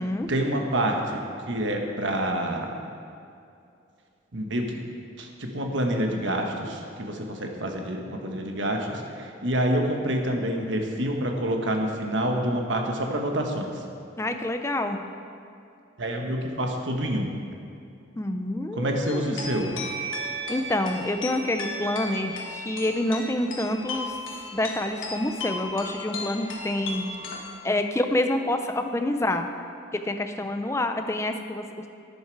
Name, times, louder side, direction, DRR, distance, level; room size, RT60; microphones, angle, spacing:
voice 1, 0.3-2.7 4.3-4.8 5.2-13.7 16.0-17.3 18.7-19.7, right 1 dB, 70° right, 2 dB, 1.3 m, -27 dB
voice 2, 14.2-15.0 18.2-19.4 20.5-24.2 24.5-27.1 27.6-29.5 29.9-31.6, left 1 dB, 15° left, 6 dB, 0.5 m, -27 dB
sound 1, 19.1-27.6, left 1 dB, 80° left, 1.5 m, -35 dB
11.5 x 9.5 x 4.7 m, 2.5 s
head